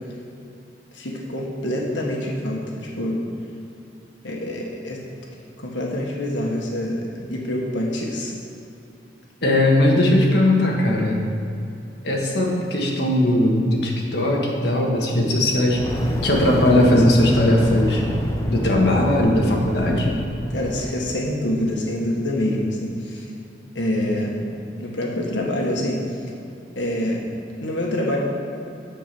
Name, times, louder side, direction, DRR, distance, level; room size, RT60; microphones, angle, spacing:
voice 1, 0.9-3.2 4.2-5.0 5.6-8.3 20.5-23.3 23.8-24.4 24.8-26.0 26.8-27.2 27.6-28.2, left 1 dB, 90° left, -1 dB, 1.6 m, -26 dB
voice 2, 9.4-11.2 12.0-15.8 16.2-18.1 18.5-20.1, left 1 dB, 65° left, -1 dB, 1.6 m, -19 dB
Fire, 15.7-21.0, equal, 15° left, 0.7 m, -28 dB
8.3 x 7.0 x 6.1 m, 2.7 s
head